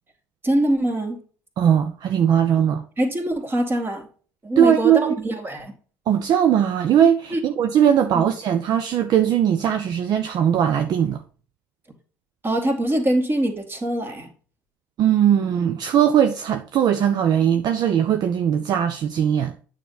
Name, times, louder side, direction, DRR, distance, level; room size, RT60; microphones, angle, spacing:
voice 1, 0.4-1.2 3.0-4.1 4.4-5.7 7.3-7.4 8.1-8.2 12.4-14.3, right 1 dB, 25° right, 2.1 m, -23 dB
voice 2, 1.6-2.8 4.6-5.2 6.1-11.2 15.0-19.5, right 9 dB, 50° right, 0.6 m, -19 dB
9.1 x 4.4 x 4.0 m
figure-of-eight pair, 55°, 9 cm